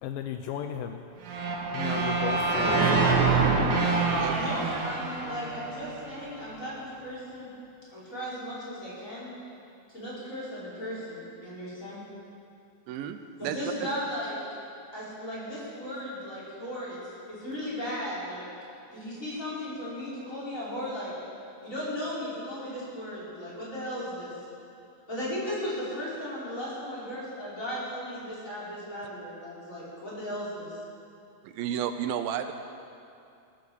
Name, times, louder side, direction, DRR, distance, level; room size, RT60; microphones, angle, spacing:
voice 1, 0.0-1.1 1.7-2.9, left 9 dB, 80° left, 6 dB, 2.2 m, -35 dB
sound 1, 1.2-6.3, right 3 dB, 60° right, 2.7 m, -26 dB
voice 2, 4.3-7.5 7.9-9.3 9.9-12.0 13.4-14.3 14.9-17.0 17.3-18.5 18.9-21.1 21.6-24.3 25.1-30.8, equal, 20° left, -9 dB, 5.4 m, -36 dB
voice 3, 12.9-13.9 31.4-32.5, right 9 dB, 85° right, 8 dB, 2.4 m, -33 dB
20.0 x 9.6 x 7.1 m, 2.6 s
omnidirectional pair, 4.2 m